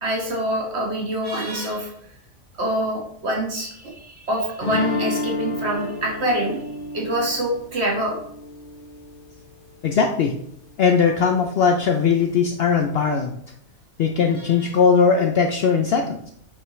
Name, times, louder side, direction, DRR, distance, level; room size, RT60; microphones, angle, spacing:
voice 1, 0.0-1.9 2.6-6.6 6.9-8.1 14.4-14.5, right 1 dB, 50° right, -1 dB, 1.7 m, -25 dB
sound 1, 4.6-9.5, left 3 dB, 45° left, 1.0 m, -30 dB
voice 2, 9.8-10.3 10.8-13.3 14.0-16.3, left 6 dB, 65° left, 4 dB, 0.6 m, -19 dB
5.5 x 5.5 x 3.1 m, 0.70 s
omnidirectional pair, 1.4 m